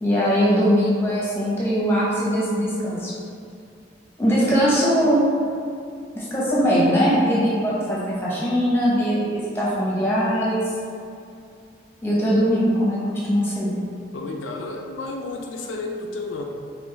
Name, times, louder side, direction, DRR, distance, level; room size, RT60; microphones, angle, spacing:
voice 1, 0.0-3.1 4.2-5.3 6.1-10.7 12.0-13.7, equal, 10° left, -6 dB, 0.8 m, -21 dB
voice 2, 4.2-4.8 14.1-16.4, left 2 dB, 85° left, 1 dB, 0.4 m, -32 dB
5.1 x 2.5 x 3.3 m, 2.4 s
head